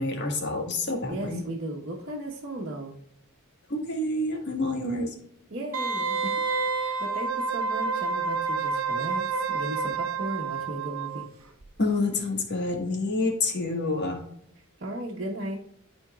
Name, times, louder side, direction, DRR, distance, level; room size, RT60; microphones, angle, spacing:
voice 1, 0.0-1.4 3.7-5.1 11.8-14.2, left 2 dB, 55° left, 1 dB, 1.6 m, -28 dB
voice 2, 1.1-3.0 5.5-6.4 6.7-11.3 14.8-15.6, right 1 dB, 50° right, -6 dB, 1.2 m, -36 dB
Wind instrument woodwind instrument, 5.7-11.3 11.6-11.7, right 4 dB, 70° right, 0.9 m, -29 dB
12.5 x 4.5 x 2.4 m, 0.71 s
head